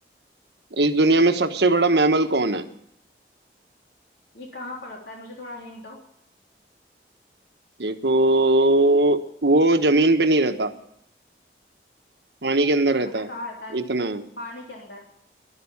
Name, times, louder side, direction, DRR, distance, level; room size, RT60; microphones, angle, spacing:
voice 1, 0.7-2.6 7.8-10.7 12.4-13.3 13.7-14.2, right 2 dB, 75° right, 7 dB, 1.3 m, -19 dB
voice 2, 4.3-6.0 13.0-13.8 14.4-15.0, left 2 dB, 75° left, -1 dB, 3.5 m, -38 dB
13.0 x 11.5 x 7.2 m, 0.70 s
head